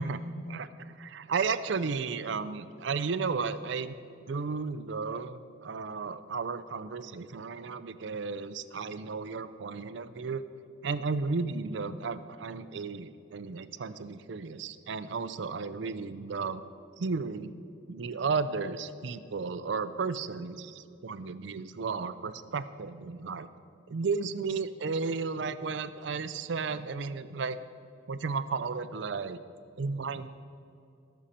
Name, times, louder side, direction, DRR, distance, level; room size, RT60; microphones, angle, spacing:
voice 1, 0.0-4.0 4.3-10.4 10.8-16.6 17.0-17.5 17.9-23.5 23.9-27.6 28.1-29.4 29.8-30.3, right 4 dB, 65° right, 13 dB, 0.5 m, -34 dB
18.0 x 6.3 x 4.3 m, 2.6 s
head